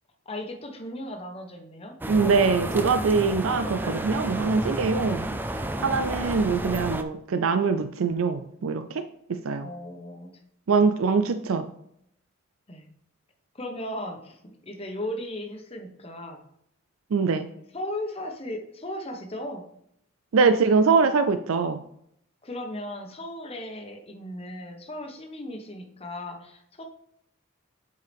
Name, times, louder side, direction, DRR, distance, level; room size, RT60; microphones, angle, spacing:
voice 1, 0.2-2.0 9.6-10.3 11.0-11.1 12.7-12.9 13.5-16.4 17.7-19.6 22.4-26.8, left 1 dB, 30° left, 3 dB, 1.0 m, -36 dB
sound 1, 2.0-7.0, right 1 dB, 10° right, 0.4 m, -31 dB
voice 2, 2.1-5.3 5.8-9.0 9.3-9.7 10.7-11.6 17.1-17.5 20.3-21.8, right 4 dB, 90° right, 10 dB, 0.4 m, -23 dB
8.1 x 4.6 x 3.5 m, 0.73 s
head